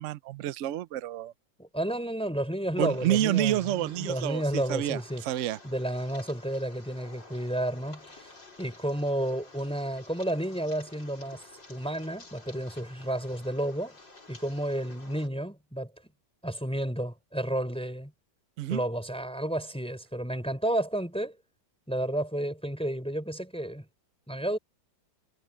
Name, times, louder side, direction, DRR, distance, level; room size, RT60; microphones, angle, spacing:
voice 1, 0.0-1.3 2.8-5.6 18.6-18.8, right 13 dB, 80° right, 0.6 m, -29 dB
voice 2, 1.6-5.2 5.6-8.3 8.6-14.0 14.3-15.9 16.4-18.1 18.7-21.4 21.9-23.8 24.3-24.6, right 1 dB, 5° left, 4.2 m, -31 dB
sound 1, 2.8-15.3, left 3 dB, 75° left, 6.5 m, -52 dB
omnidirectional pair, 2.0 m